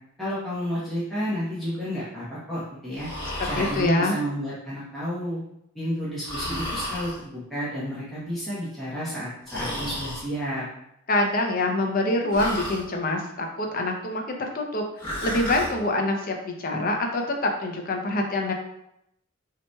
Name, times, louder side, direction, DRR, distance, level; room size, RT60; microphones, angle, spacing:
voice 1, 0.2-3.1 3.4-5.4 5.7-10.6, equal, ahead, -12 dB, 1.0 m, -31 dB
Breathing, 2.9-3.9 6.2-7.2 9.5-10.2 12.3-12.8 15.0-15.7, equal, 25° left, 1.4 m, -32 dB
voice 2, 3.4-4.1 11.1-18.5, left 2 dB, 40° left, 2 dB, 0.6 m, -25 dB
5.8 x 2.9 x 2.3 m, 0.79 s
head